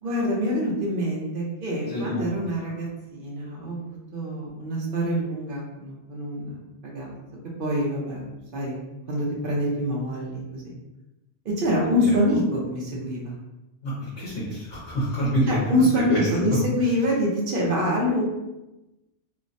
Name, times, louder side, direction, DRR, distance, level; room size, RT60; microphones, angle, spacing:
voice 1, 0.0-7.2 7.6-8.3 8.5-8.8 9.1-10.7 11.4-13.4 15.5-18.2, equal, 55° right, -3 dB, 0.7 m, -26 dB
voice 2, 1.9-2.5 13.8-16.4, equal, 75° left, -7 dB, 1.1 m, -27 dB
3.1 x 2.0 x 2.5 m, 0.98 s
omnidirectional pair, 1.2 m